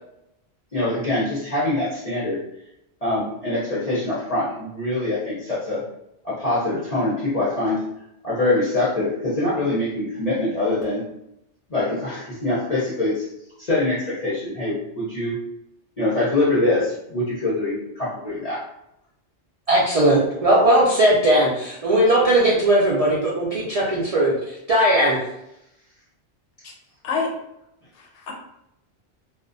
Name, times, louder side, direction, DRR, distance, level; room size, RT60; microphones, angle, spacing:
voice 1, 0.7-2.4 3.0-5.8 6.2-7.8 8.2-11.0 11.7-13.3 13.6-15.4 16.0-18.6, left 2 dB, 40° left, -9 dB, 0.6 m, -24 dB
voice 2, 19.7-24.3 24.7-25.2, right 1 dB, 65° right, -5 dB, 0.3 m, -18 dB
voice 3, 27.0-27.4 27.9-28.3, left 4 dB, 80° left, 0 dB, 0.9 m, -27 dB
2.4 x 2.1 x 2.5 m, 0.82 s
omnidirectional pair, 1.2 m